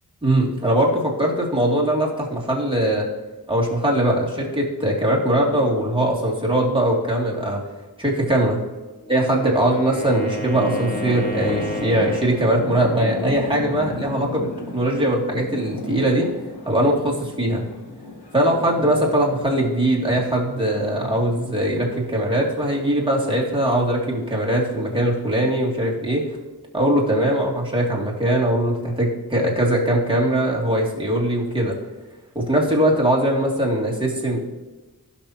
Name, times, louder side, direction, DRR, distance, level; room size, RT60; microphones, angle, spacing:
voice 1, 0.2-3.1 3.5-7.6 8.0-8.6 9.1-16.3 16.7-17.7 18.3-26.2 26.7-31.7 32.3-34.4, right 1 dB, 15° right, -4 dB, 2.6 m, -21 dB
Wind instrument woodwind instrument, 9.0-12.6, left 1 dB, 20° left, 1.5 m, -32 dB
sound 1, 9.6-25.9, left 2 dB, 80° left, 1.2 m, -35 dB
16.5 x 6.3 x 2.9 m, 1.2 s
wide cardioid pair, 60°, 38 cm